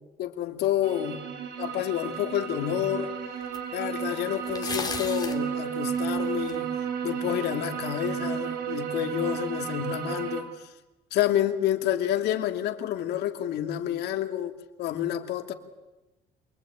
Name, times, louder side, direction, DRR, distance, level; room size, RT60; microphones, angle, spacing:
voice 1, 0.2-1.2 1.6-3.1 3.7-6.7 7.0-10.7 11.1-15.5, left 11 dB, 75° left, 2.7 m, -29 dB
sound 1, 0.8-10.4, right 8 dB, 75° right, 5.0 m, -33 dB
sound 2, 2.4-2.5 3.5-3.6 4.5-5.4 5.9-6.5, left 4 dB, 25° left, 3.2 m, -34 dB
27.5 x 23.5 x 9.0 m
cardioid pair, 110°, 17 cm